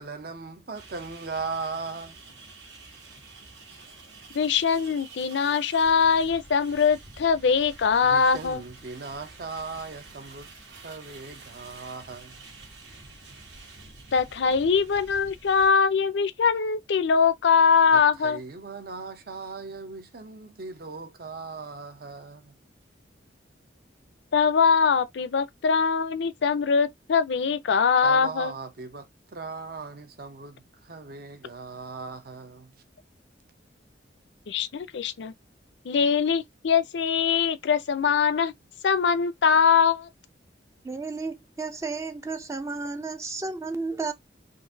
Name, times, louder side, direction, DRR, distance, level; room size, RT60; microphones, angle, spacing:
voice 1, 0.0-2.2 8.0-12.4 17.9-22.5 28.0-32.7, right 4 dB, 55° right, 0.7 m, -38 dB
sound 1, 0.7-15.7, right 3 dB, 80° right, 1.5 m, -48 dB
voice 2, 4.3-8.6 14.1-18.4 24.3-28.5 34.5-35.3 35.8-38.5 38.8-40.1, left 6 dB, 70° left, 0.4 m, -22 dB
voice 3, 40.8-44.1, right 3 dB, 15° right, 0.4 m, -32 dB
3.8 x 2.5 x 2.7 m
head